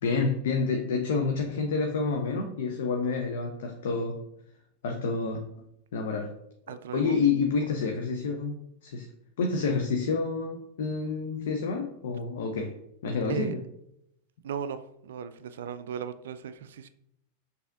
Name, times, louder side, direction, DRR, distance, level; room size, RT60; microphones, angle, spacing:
voice 1, 0.0-4.2 4.8-5.4 5.9-6.3 6.9-9.1 9.4-12.8 13.0-13.6, left 4 dB, 55° left, 3 dB, 0.5 m, -28 dB
voice 2, 6.7-7.2 13.2-13.5 14.4-16.9, right 7 dB, 60° right, 11 dB, 0.3 m, -36 dB
6.1 x 2.7 x 2.4 m, 0.77 s
figure-of-eight pair, 90°, 0 cm